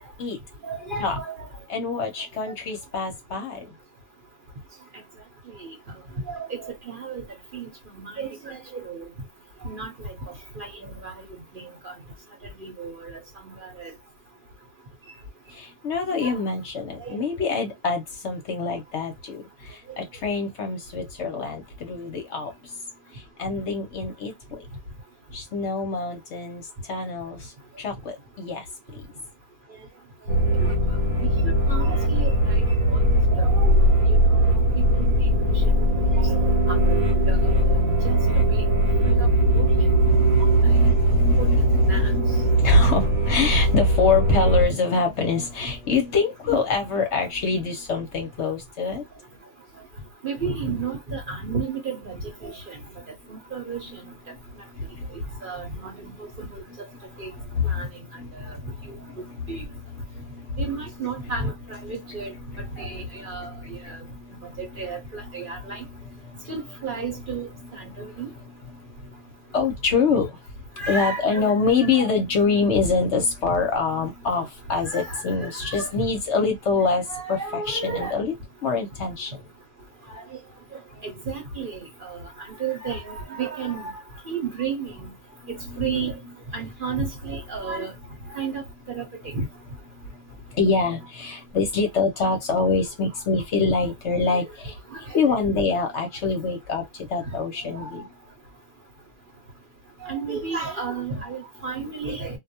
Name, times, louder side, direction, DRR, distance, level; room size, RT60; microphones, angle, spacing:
voice 1, 0.6-1.3 5.6-5.7 6.3-7.2 7.5-7.7 7.9-9.1 9.6-10.1 10.6-11.1 11.8-11.9 12.6-13.1 13.4-13.9 16.1-16.4 17.0-17.2 31.2-32.3 32.9-33.0 33.3-33.8 34.8-35.2 36.0-36.4 36.7-37.8 38.0-38.6 39.0-39.3 39.5-39.7 41.4-41.5 41.8-42.1 50.2-52.8 53.3-54.0 55.4-56.1 56.4-56.6 57.2-57.3 57.7-57.9 58.5-58.6 59.5-59.6 60.6-62.3 62.8-64.0 64.6-65.8 66.5-67.5 67.8-68.3 70.8-71.5 71.9-72.1 74.8-75.2 75.6-76.1 77.1-78.1 80.1-80.2 81.0-82.2 82.6-83.9 84.3-85.1 85.8-86.1 86.5-87.9 88.3-88.6 88.9-89.1 89.3-89.4 95.3-95.4 97.7-97.9 100.0-102.4, right 5 dB, 45° right, 0.9 m, -32 dB
voice 2, 1.7-3.7 15.5-22.8 23.1-24.7 25.3-29.1 40.0-49.1 53.6-53.7 54.3-55.5 56.0-56.1 56.7-56.8 57.1-57.9 58.2-61.3 61.8-64.8 65.2-66.5 67.6-68.2 68.7-78.3 78.6-79.5 85.4-86.0 89.9-98.1, left 4 dB, 60° left, 0.9 m, -26 dB
sound 1, 30.3-44.7, right 1 dB, 80° right, 1.2 m, -19 dB
2.4 x 2.1 x 2.7 m
omnidirectional pair, 1.5 m